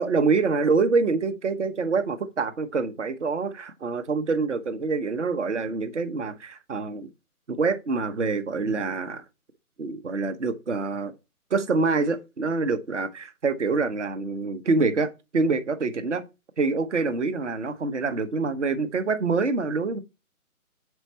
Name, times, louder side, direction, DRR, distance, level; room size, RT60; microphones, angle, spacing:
voice 1, 0.0-7.1 7.5-9.2 9.8-11.1 11.5-15.1 15.3-16.2 16.6-20.0, right 4 dB, 50° right, 0.9 m, -26 dB
7.2 x 4.6 x 4.1 m
hypercardioid pair, 170°, 45 cm